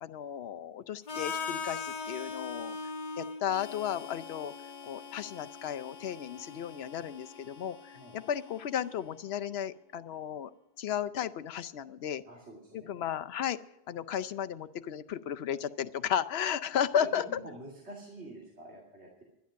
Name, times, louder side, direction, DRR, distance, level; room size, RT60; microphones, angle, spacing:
voice 1, 0.0-2.8 3.2-4.5 4.8-10.5 10.8-12.2 12.7-13.6 13.9-17.2, left 9 dB, 75° left, 11 dB, 0.9 m, -34 dB
Harmonica, 1.1-9.0, left 5 dB, 50° left, 1.0 m, -41 dB
voice 2, 12.3-12.9 17.4-19.2, right 1 dB, 90° right, -2 dB, 2.9 m, -48 dB
11.5 x 11.5 x 6.3 m, 0.89 s
omnidirectional pair, 1.1 m